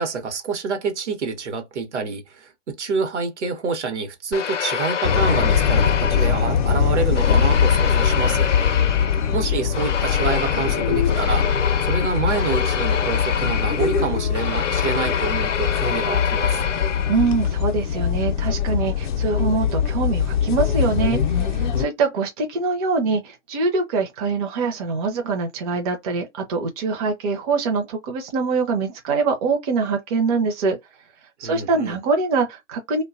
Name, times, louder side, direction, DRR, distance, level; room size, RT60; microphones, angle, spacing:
voice 1, 0.0-8.5 9.3-16.6 31.4-32.0, right 5 dB, 70° right, 0.9 m, -27 dB
sound 1, 4.3-6.7 7.2-17.5, left 7 dB, 85° left, 0.5 m, -27 dB
sound 2, 5.0-21.9, left 7 dB, 40° left, 0.5 m, -22 dB
voice 2, 17.1-30.8 31.4-33.0, right 4 dB, 30° right, 0.5 m, -24 dB
2.4 x 2.2 x 2.4 m
figure-of-eight pair, 120°, 36 cm